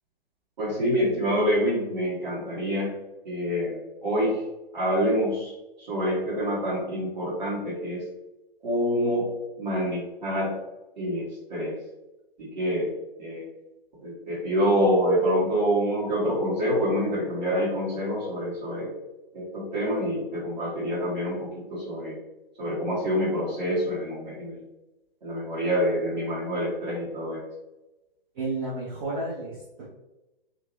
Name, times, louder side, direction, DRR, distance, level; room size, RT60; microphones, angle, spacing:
voice 1, 0.6-2.9 3.2-4.4 4.7-5.5 5.8-8.0 8.6-9.3 9.6-10.5 11.0-11.8 12.4-12.9 13.2-13.4 14.0-18.9 19.3-22.2 22.6-24.6 25.2-27.4, equal, 50° right, -9 dB, 1.4 m, -26 dB
voice 2, 28.3-29.9, right 2 dB, 15° right, -7 dB, 0.5 m, -32 dB
2.9 x 2.6 x 3.0 m, 1.0 s
figure-of-eight pair, 125°, 29 cm